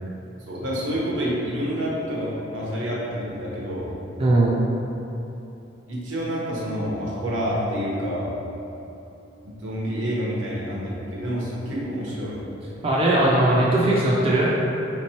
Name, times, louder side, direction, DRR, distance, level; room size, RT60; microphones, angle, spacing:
voice 1, 0.5-3.9 5.9-8.3 9.4-12.4, equal, 80° right, -5 dB, 1.0 m, -28 dB
voice 2, 4.2-4.6 12.8-14.5, right 1 dB, 30° right, -5 dB, 0.4 m, -19 dB
3.6 x 3.0 x 4.3 m, 2.9 s
head